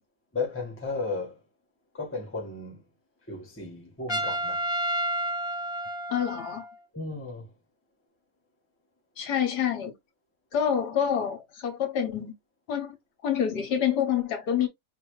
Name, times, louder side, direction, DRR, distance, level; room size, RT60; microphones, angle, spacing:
voice 1, 0.3-1.3 1.9-2.8 3.3-4.6 6.9-7.4, left 3 dB, 10° left, 1.2 m, -34 dB
Trumpet, 4.1-6.8, right 1 dB, 30° left, 0.5 m, -30 dB
voice 2, 6.1-6.7 9.2-9.9 10.5-12.3 12.7-13.0 13.2-14.7, left 8 dB, 70° left, 1.5 m, -27 dB
5.0 x 2.8 x 3.1 m
omnidirectional pair, 1.8 m